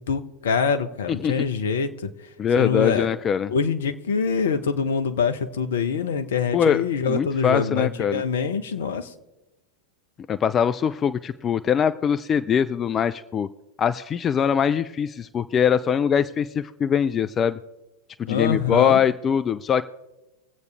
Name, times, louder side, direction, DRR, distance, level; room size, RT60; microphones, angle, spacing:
voice 1, 0.1-1.9 2.6-3.1 3.5-9.1 18.3-19.0, left 6 dB, 60° left, 9 dB, 0.9 m, -24 dB
voice 2, 2.4-3.5 6.5-8.2 10.3-13.5 13.8-17.6 18.2-19.8, left 8 dB, 25° left, 12 dB, 0.4 m, -22 dB
22.5 x 8.1 x 3.4 m, 1.0 s
figure-of-eight pair, 90°, 0 cm